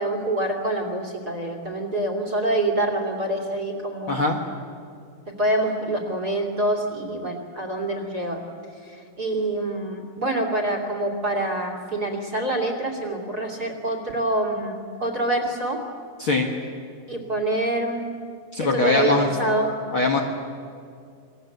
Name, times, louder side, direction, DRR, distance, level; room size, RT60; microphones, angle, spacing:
voice 1, 0.0-4.2 5.4-8.4 8.8-15.8 17.1-18.0 18.6-19.7, right 1 dB, 30° right, 4 dB, 2.9 m, -26 dB
voice 2, 4.1-4.4 16.2-16.5 18.5-19.3 19.9-20.2, left 3 dB, 45° left, 0 dB, 1.9 m, -21 dB
28.5 x 21.5 x 8.0 m, 2.3 s
omnidirectional pair, 4.1 m